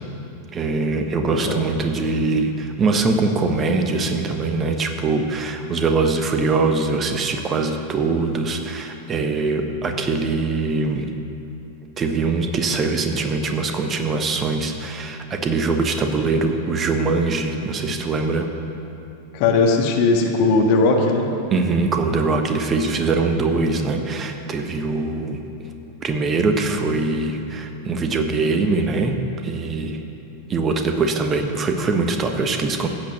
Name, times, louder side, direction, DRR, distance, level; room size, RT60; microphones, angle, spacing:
voice 1, 0.5-11.1 12.0-18.5 21.5-25.4 26.0-30.0 30.5-32.9, right 3 dB, 25° right, 5 dB, 1.2 m, -22 dB
voice 2, 19.3-21.3, left 3 dB, 45° left, 2 dB, 1.7 m, -18 dB
15.0 x 8.7 x 6.5 m, 2.9 s
figure-of-eight pair, 90°, 0 cm